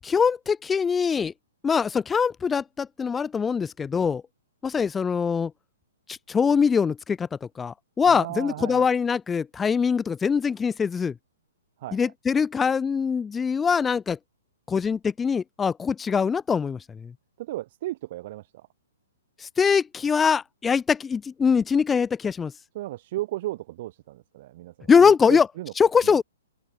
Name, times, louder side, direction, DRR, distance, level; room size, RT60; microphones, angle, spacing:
voice 1, 0.0-1.3 1.6-4.2 4.6-5.5 6.1-11.1 11.9-14.2 14.7-17.1 19.4-22.5 24.9-25.5 25.8-26.2, left 6 dB, 10° left, 2.3 m, -23 dB
voice 2, 8.1-8.9 11.8-12.1 17.4-18.7 22.7-25.7 26.0-26.2, right 16 dB, 45° right, 3.7 m, -35 dB
open air
hypercardioid pair, 155°, 0 cm